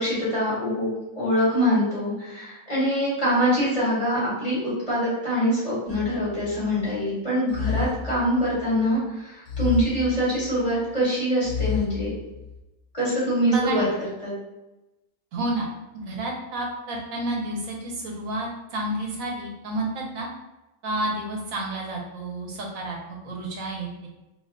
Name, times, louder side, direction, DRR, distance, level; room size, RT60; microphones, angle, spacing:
voice 1, 0.0-12.1 12.9-13.8 14.2-14.3, equal, 30° left, -9 dB, 1.3 m, -24 dB
sound 1, 5.9-6.8 7.5-8.8 9.5-10.8 11.4-12.6, left 5 dB, 65° left, 0.5 m, -31 dB
voice 2, 13.5-13.9 15.3-15.7 16.1-20.3 20.8-24.1, right 1 dB, 80° right, -1 dB, 1.2 m, -30 dB
2.8 x 2.2 x 3.7 m, 0.99 s
omnidirectional pair, 1.4 m